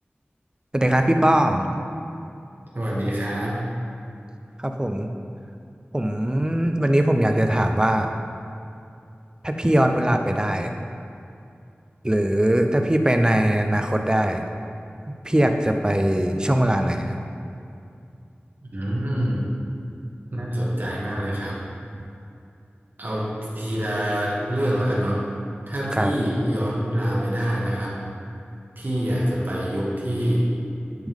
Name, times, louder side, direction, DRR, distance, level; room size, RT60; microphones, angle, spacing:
voice 1, 0.7-1.7 4.6-5.1 5.9-8.1 9.4-10.7 12.0-14.4 15.2-17.2 25.9-26.1, right 1 dB, 20° right, 5 dB, 0.5 m, -21 dB
voice 2, 2.7-3.7 18.7-19.5 20.3-21.6 23.0-23.3 23.5-25.2 25.7-28.0 28.8-30.5, equal, 55° right, -6 dB, 1.5 m, -25 dB
10.5 x 3.6 x 3.6 m, 2.6 s
wide cardioid pair, 55°, 4 cm